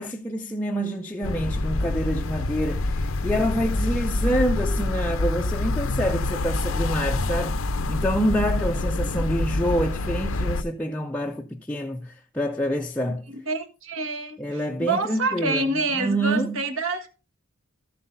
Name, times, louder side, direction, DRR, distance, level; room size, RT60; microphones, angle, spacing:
voice 1, 0.0-13.2 14.4-16.6, equal, 5° left, 0.4 m, -27 dB
sound 1, 1.2-10.6, left 2 dB, 75° left, 0.6 m, -26 dB
voice 2, 8.9-9.4 13.3-17.1, right 3 dB, 65° right, 1.4 m, -28 dB
13.5 x 7.8 x 2.6 m
head